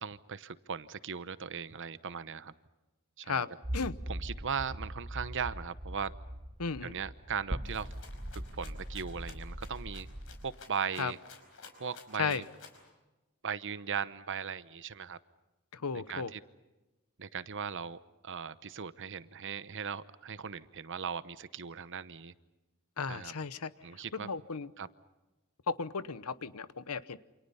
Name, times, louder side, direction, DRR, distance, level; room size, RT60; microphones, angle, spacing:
voice 1, 0.0-2.5 3.2-3.4 4.1-6.1 6.8-7.9 8.3-10.1 10.4-11.2 11.8-12.4 13.4-15.2 15.9-16.4 17.2-18.0 18.2-22.3 23.1-23.3 23.8-24.3 24.8-24.9, right 6 dB, 60° right, 0.9 m, -38 dB
sound 1, 3.6-10.5, right 1 dB, 25° right, 1.1 m, -41 dB
voice 2, 6.6-6.9 11.0-11.1 12.2-12.4 15.8-16.3 23.0-23.7 24.1-24.7 25.7-27.2, left 5 dB, 85° left, 1.0 m, -34 dB
Rattle (instrument), 7.7-12.9, left 5 dB, 65° left, 4.9 m, -54 dB
28.5 x 27.0 x 5.6 m
head